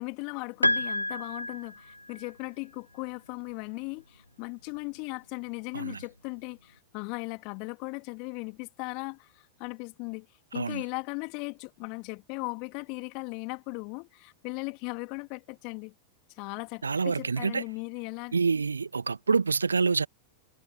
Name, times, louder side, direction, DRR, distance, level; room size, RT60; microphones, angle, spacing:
voice 1, 0.0-10.3 10.5-15.9 16.4-18.3, left 34 dB, 45° left, 3.2 m, -38 dB
Piano, 0.6-2.3, left 1 dB, 85° left, 1.0 m, -29 dB
voice 2, 16.8-17.6 18.3-20.1, right 5 dB, 75° right, 1.6 m, -27 dB
figure-of-eight pair, 90°, 0 cm